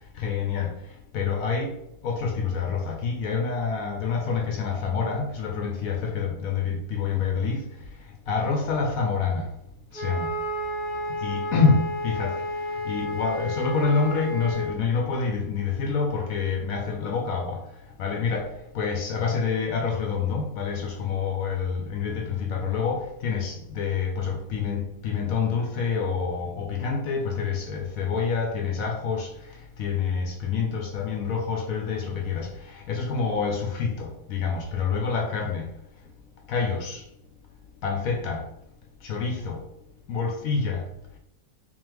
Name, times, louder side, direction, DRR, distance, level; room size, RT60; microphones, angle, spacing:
voice 1, 0.2-0.7 1.1-1.7 2.0-7.6 8.3-9.5 9.9-10.3 11.2-12.4 12.8-17.6 18.0-29.3 29.8-35.7 36.5-37.0 37.8-38.4 39.0-39.6 40.1-40.8, left 5 dB, 70° left, 0.8 m, -27 dB
Wind instrument woodwind instrument, 9.9-14.7, equal, 45° right, 0.5 m, -31 dB
3.5 x 3.0 x 3.3 m
omnidirectional pair, 2.0 m